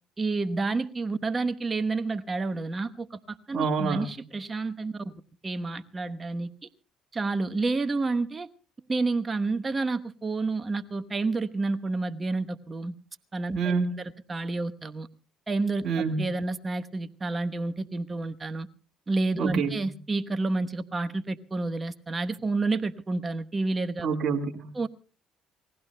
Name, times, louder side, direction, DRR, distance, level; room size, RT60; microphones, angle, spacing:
voice 1, 0.2-5.1 5.4-6.7 7.1-8.5 8.9-12.9 13.3-15.1 15.5-15.8 16.2-18.7 19.1-24.1 24.7-24.9, right 3 dB, 30° right, 9 dB, 1.0 m, -29 dB
voice 2, 3.5-4.1 13.5-13.9 15.8-16.3 19.4-19.8 24.0-24.7, right 5 dB, 50° right, 3 dB, 1.7 m, -27 dB
28.0 x 19.0 x 2.2 m, 0.38 s
supercardioid pair, 65°, 0 cm